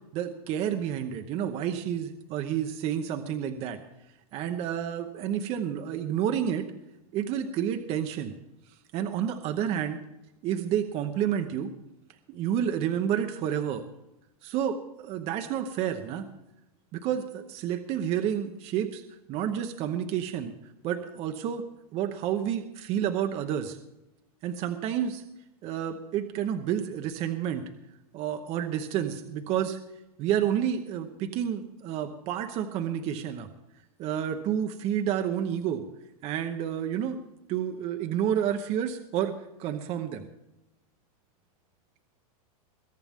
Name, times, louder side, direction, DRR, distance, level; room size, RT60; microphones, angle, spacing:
voice 1, 0.1-3.8 4.3-6.7 7.1-8.3 8.9-10.0 10.4-11.7 12.3-13.8 14.4-16.3 16.9-19.0 19.3-20.5 20.8-21.6 21.9-23.8 24.4-25.2 25.6-27.6 28.1-29.8 30.2-33.5 34.0-35.8 36.2-37.2 37.5-39.3 39.6-40.3, right 9 dB, 30° right, 7 dB, 0.9 m, -30 dB
22.0 x 10.5 x 3.6 m, 0.91 s
supercardioid pair, 150°, 19 cm